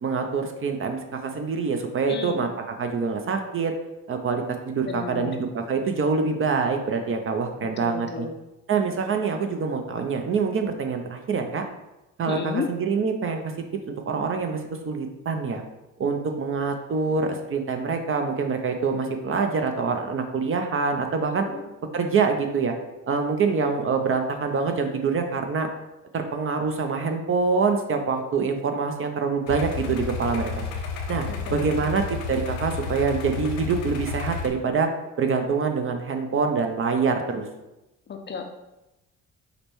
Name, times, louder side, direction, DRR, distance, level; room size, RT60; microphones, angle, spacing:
voice 1, 0.0-2.5 2.8-3.7 4.1-8.3 8.7-11.6 12.2-13.4 13.9-15.6 16.0-21.5 21.9-22.7 23.1-25.7 26.1-30.6 31.1-32.0 32.3-34.9 35.2-37.5, right 5 dB, 40° right, 5 dB, 0.5 m, -25 dB
voice 2, 2.1-2.5 4.9-5.5 7.6-8.4 12.2-12.7 21.4-21.7 31.3-31.9 38.1-38.4, left 5 dB, 30° left, 4 dB, 0.5 m, -33 dB
sound 1, 29.5-34.5, left 5 dB, 80° left, 0.7 m, -31 dB
4.9 x 2.1 x 3.1 m, 0.96 s
supercardioid pair, 70°, 35 cm